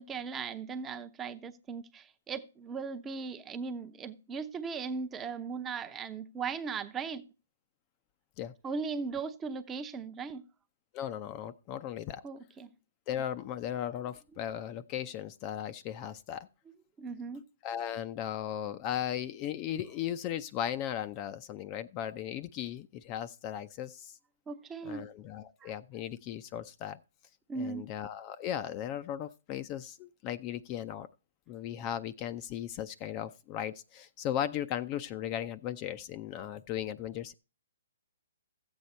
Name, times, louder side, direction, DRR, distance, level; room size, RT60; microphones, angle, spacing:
voice 1, 0.0-7.2 8.6-10.4 12.2-12.7 17.0-17.5 24.5-25.1 25.6-25.7 27.5-27.9, right 5 dB, 15° right, 0.7 m, -38 dB
voice 2, 10.9-12.2 13.1-16.5 17.6-24.2 24.8-27.0 27.5-31.1 31.5-37.3, left 10 dB, 30° left, 0.5 m, -37 dB
14.0 x 8.0 x 4.2 m
hypercardioid pair, 140°, 0 cm